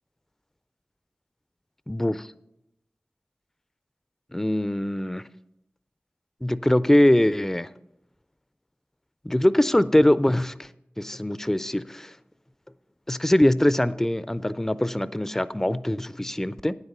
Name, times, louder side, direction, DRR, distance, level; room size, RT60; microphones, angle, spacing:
voice 1, 1.9-2.3 4.3-5.3 6.4-7.7 9.2-10.7 11.0-12.1 13.1-16.7, left 1 dB, 10° left, 16 dB, 0.4 m, -22 dB
9.7 x 8.0 x 5.4 m, 0.83 s
wide cardioid pair, 45°, 4 cm